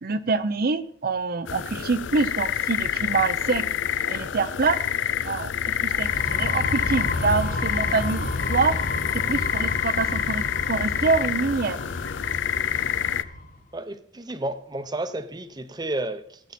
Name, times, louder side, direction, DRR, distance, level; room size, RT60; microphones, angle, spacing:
voice 1, 0.0-3.6 4.1-4.8 5.2-5.5 5.8-8.8 9.3-10.4 10.7-11.8, right 4 dB, 50° right, 0.6 m, -25 dB
sound 1, 1.5-13.2, left 9 dB, 80° left, 0.5 m, -27 dB
sound 2, 5.9-13.5, left 2 dB, 45° left, 1.0 m, -31 dB
voice 2, 13.7-16.5, right 1 dB, 20° right, 0.8 m, -32 dB
16.0 x 8.6 x 4.2 m
head